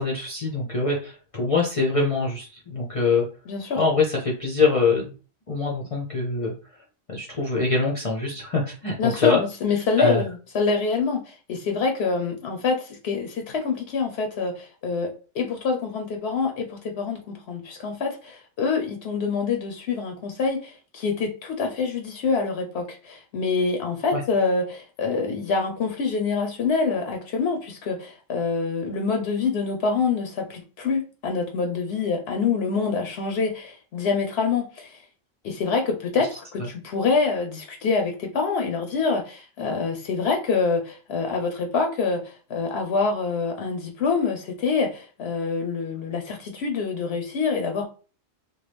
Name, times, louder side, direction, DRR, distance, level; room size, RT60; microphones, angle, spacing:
voice 1, 0.0-3.3 3.8-5.1 5.5-6.5 7.1-9.4 10.0-10.2 24.1-24.2 36.2-36.3, left 4 dB, 40° left, -3 dB, 0.6 m, -24 dB
voice 2, 3.5-3.8 9.0-35.0 35.4-47.8, left 4 dB, 75° left, 4 dB, 0.8 m, -26 dB
3.0 x 2.3 x 3.3 m, 0.36 s
omnidirectional pair, 1.1 m